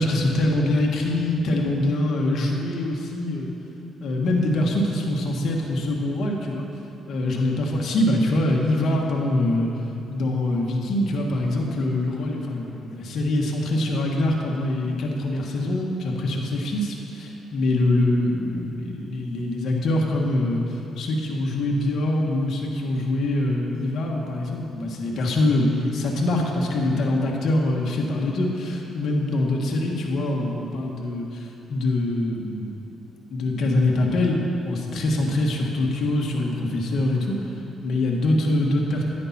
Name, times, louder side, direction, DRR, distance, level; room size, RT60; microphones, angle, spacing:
voice 1, 0.0-3.5 4.0-6.7 7.1-9.7 10.1-32.8 33.3-37.4 37.8-39.0, left 1 dB, 65° left, -1 dB, 1.6 m, -24 dB
10.5 x 9.9 x 4.3 m, 2.9 s
cardioid pair, 90°, 0 cm